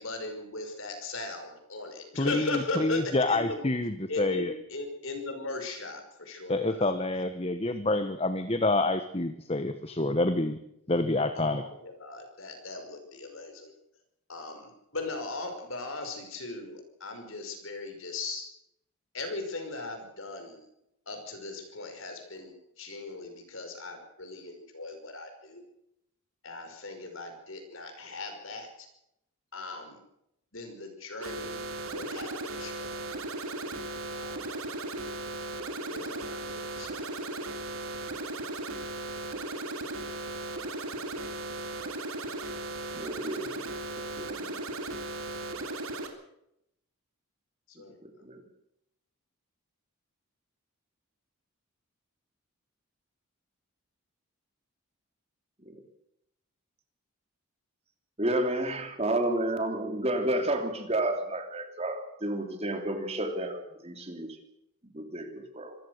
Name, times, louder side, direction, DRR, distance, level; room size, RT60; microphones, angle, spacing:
voice 1, 0.0-3.7 4.1-6.9 11.3-13.7 14.3-18.4 19.1-20.7 21.1-25.6 26.4-28.9 29.5-30.0 30.5-31.6 31.9-32.9 34.1-34.4 35.9-37.1 47.8-48.0, left 3 dB, 65° left, 6 dB, 5.6 m, -38 dB
voice 2, 2.2-4.5 6.5-10.6 10.9-11.6, left 2 dB, 25° left, 9 dB, 1.2 m, -27 dB
sound 1, 31.2-46.1, right 2 dB, 70° right, 3.2 m, -36 dB
voice 3, 42.9-43.7 44.0-44.6 48.0-48.4 55.7-55.8 58.2-64.4 64.8-65.7, right 1 dB, 30° right, 6 dB, 3.0 m, -31 dB
25.5 x 15.0 x 6.6 m, 0.79 s
head